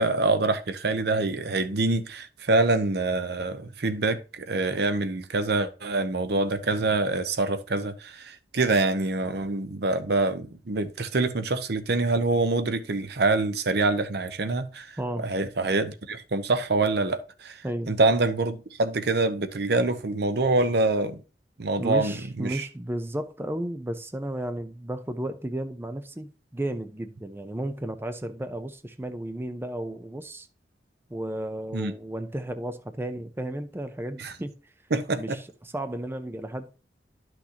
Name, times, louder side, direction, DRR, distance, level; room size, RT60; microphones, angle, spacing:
voice 1, 0.0-17.6 17.9-21.2 21.6-22.1 22.4-22.7 31.7-31.9 34.2-34.3 34.9-35.4, right 2 dB, 65° right, 0.8 m, -25 dB
voice 2, 17.6-18.0 21.8-30.5 31.1-34.5 35.1-36.7, right 1 dB, 15° right, 0.6 m, -33 dB
11.5 x 6.1 x 2.9 m
head